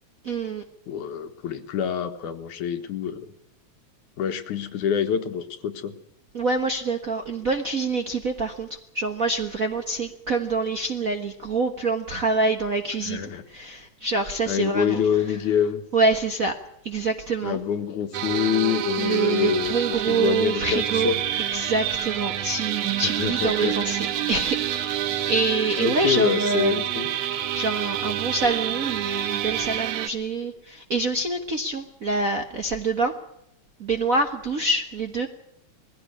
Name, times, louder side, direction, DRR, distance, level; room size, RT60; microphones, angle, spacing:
voice 1, 0.2-0.6 6.3-15.4 15.9-16.5 16.8-17.6 19.0-21.1 21.5-24.0 24.3-25.0 25.3-26.8 27.5-33.1 33.8-35.3, right 3 dB, 50° right, 5 dB, 1.0 m, -26 dB
voice 2, 0.9-3.3 4.2-5.9 13.0-13.4 14.5-15.8 17.4-19.7 20.1-21.2 23.2-23.8 25.8-27.1, left 8 dB, 85° left, 7 dB, 2.9 m, -26 dB
sound 1, 18.1-30.1, right 11 dB, 80° right, 2.6 m, -28 dB
21.0 x 16.0 x 9.8 m, 0.80 s
omnidirectional pair, 3.4 m